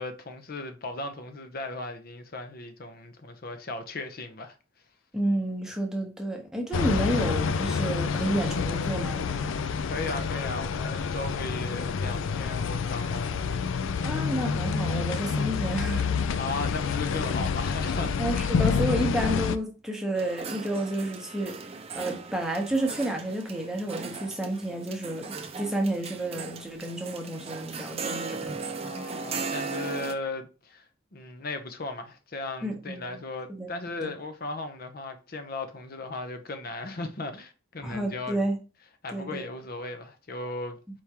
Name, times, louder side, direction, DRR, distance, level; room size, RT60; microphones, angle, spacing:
voice 1, 0.0-4.6 9.8-13.4 16.3-18.2 28.8-38.4 39.0-40.8, left 2 dB, 50° left, 0.7 m, -36 dB
voice 2, 5.1-9.5 14.0-16.3 18.2-21.5 22.0-28.5 32.6-33.2 33.5-34.1 37.8-38.6 39.1-39.4, right 1 dB, 5° right, 0.9 m, -30 dB
sound 1, 6.7-19.6, left 5 dB, 75° left, 0.4 m, -28 dB
sound 2, 20.2-30.1, right 4 dB, 30° right, 0.4 m, -37 dB
4.6 x 3.6 x 2.9 m
head